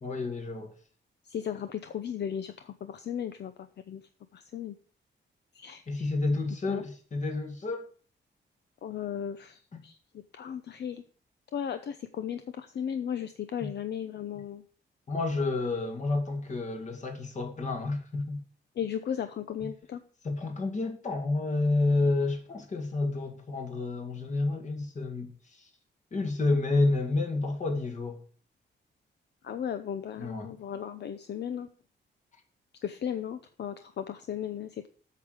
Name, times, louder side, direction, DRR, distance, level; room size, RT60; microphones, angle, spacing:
voice 1, 0.0-0.7 5.9-7.9 9.7-9.8 15.1-18.4 20.2-25.7 26.1-28.2 30.2-30.6, left 2 dB, 40° left, 2.2 m, -30 dB
voice 2, 1.2-4.0 4.3-4.8 5.5-6.1 6.7-6.8 8.8-11.0 11.5-14.6 18.8-20.0 29.4-31.7 32.8-34.9, left 8 dB, 60° left, 0.7 m, -36 dB
8.4 x 6.8 x 7.8 m
wide cardioid pair, 155°, 19 cm